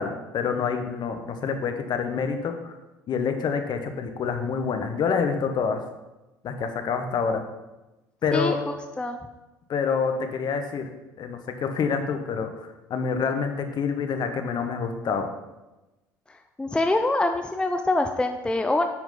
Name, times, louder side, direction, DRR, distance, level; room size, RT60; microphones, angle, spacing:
voice 1, 0.0-2.7 3.1-5.8 6.4-7.4 8.2-8.6 9.7-10.9 11.2-15.3, left 5 dB, 45° left, 6 dB, 1.0 m, -27 dB
voice 2, 16.6-18.9, left 2 dB, 10° left, 6 dB, 0.5 m, -24 dB
9.6 x 4.7 x 3.9 m, 1.0 s
figure-of-eight pair, 60°, 10 cm